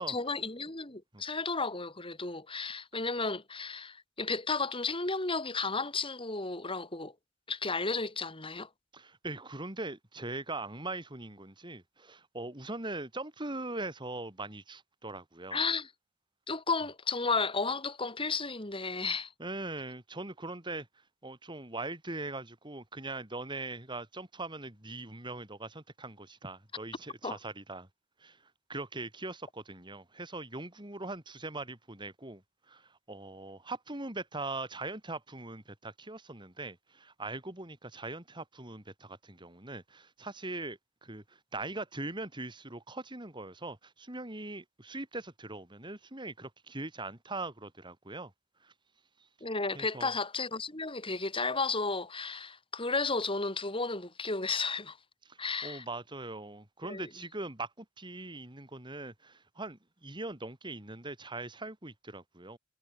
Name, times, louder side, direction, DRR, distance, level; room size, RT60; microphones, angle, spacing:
voice 1, 0.0-7.1 7.5-8.7 15.5-15.9 16.5-19.3 27.2-27.4 49.4-55.0 55.4-55.8 56.8-57.1, left 4 dB, 25° left, 4.4 m, -33 dB
voice 2, 8.9-15.6 19.4-20.9 21.2-27.9 28.2-28.4 28.7-32.4 32.7-48.3 48.6-48.7 49.7-50.1 55.2-62.6, right 2 dB, 25° right, 3.3 m, -41 dB
head